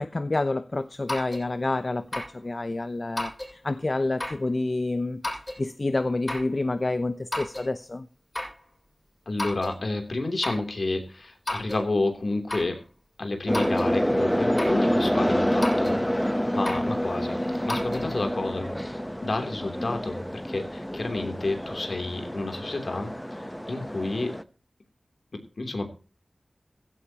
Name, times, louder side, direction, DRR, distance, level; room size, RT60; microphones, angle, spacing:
voice 1, 0.0-5.2 5.6-8.1 18.0-18.2, left 2 dB, 45° left, 12 dB, 0.7 m, -28 dB
sound 1, 1.1-1.5 2.1-2.4 3.2-3.5 4.2-4.5 5.2-5.6 6.3-6.5 7.3-7.7 8.3-8.6 9.4-9.8 10.4-10.7 11.5-11.8 12.5-12.8 13.5-13.9 14.6-14.8 15.6-16.0 16.6-16.9 17.7-18.1, left 1 dB, 30° left, 6.0 m, -32 dB
voice 2, 9.3-12.8 13.2-24.3 25.3-25.9, left 2 dB, 65° left, 5 dB, 3.2 m, -30 dB
sound 2, 13.5-24.4, equal, 5° left, 0.9 m, -27 dB
16.0 x 14.5 x 2.9 m, 0.35 s
wide cardioid pair, 65°, 0 cm